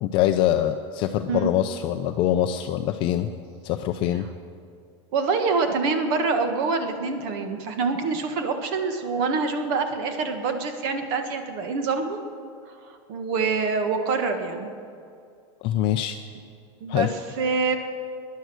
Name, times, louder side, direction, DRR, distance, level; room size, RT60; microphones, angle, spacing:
voice 1, 0.0-3.3 3.6-4.3 15.6-16.2 16.9-17.1, left 12 dB, 35° left, 7 dB, 0.5 m, -24 dB
voice 2, 5.1-12.2 12.8-14.7 16.8-17.1 17.4-17.8, right 4 dB, 50° right, 6 dB, 1.5 m, -25 dB
20.0 x 10.5 x 6.3 m, 2.4 s
supercardioid pair, 170°, 15 cm